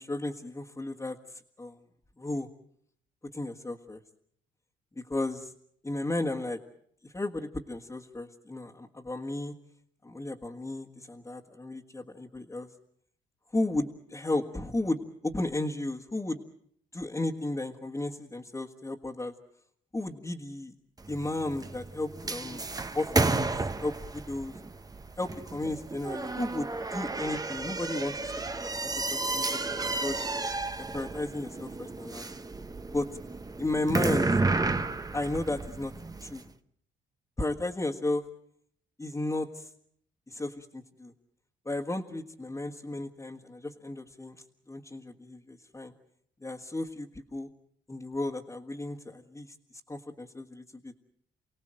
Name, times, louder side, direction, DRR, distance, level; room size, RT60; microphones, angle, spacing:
voice 1, 0.0-1.8 2.2-2.5 3.3-4.0 5.0-5.5 5.8-6.6 7.0-9.5 10.0-12.7 13.5-16.4 16.9-19.3 19.9-20.8 21.1-22.6 22.9-23.5 23.8-24.6 25.2-28.3 28.6-30.2 30.9-32.3 32.9-33.1 33.6-34.3 35.1-35.9 36.2-36.4 37.4-38.2 39.0-39.7 40.3-41.1 41.7-45.9 46.4-47.5 47.9-51.0, left 2 dB, 15° left, 0 dB, 1.7 m, -34 dB
sound 1, 21.0-36.4, right 3 dB, 20° right, 1.0 m, -32 dB
29.5 x 18.0 x 7.7 m, 0.68 s
cardioid pair, 90°, 20 cm